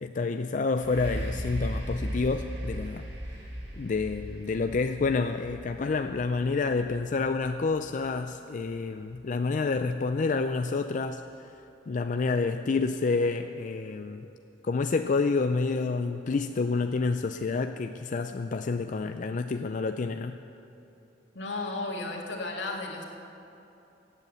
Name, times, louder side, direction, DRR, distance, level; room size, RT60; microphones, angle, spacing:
voice 1, 0.0-3.1 3.8-11.5 11.9-14.3 14.6-20.4, left 4 dB, 45° left, 7 dB, 0.4 m, -28 dB
sound 1, 0.8-8.5 9.2-9.3, equal, 65° right, 2.5 m, -37 dB
voice 2, 21.3-23.0, left 2 dB, 80° left, 0 dB, 2.1 m, -34 dB
16.0 x 8.3 x 8.1 m, 2.9 s
head